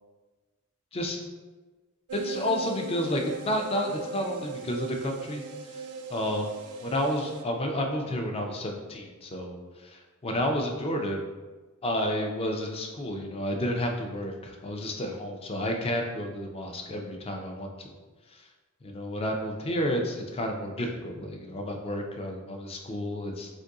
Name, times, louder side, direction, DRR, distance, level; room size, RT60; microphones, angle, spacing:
voice 1, 2.1-5.4 6.1-6.5 6.8-9.6 10.2-11.2 11.8-17.7 18.8-23.5, equal, 25° left, 3 dB, 0.4 m, -30 dB
sound 1, 2.1-7.4, right 4 dB, 80° right, 0.3 m, -39 dB
2.6 x 2.5 x 3.6 m, 1.2 s
head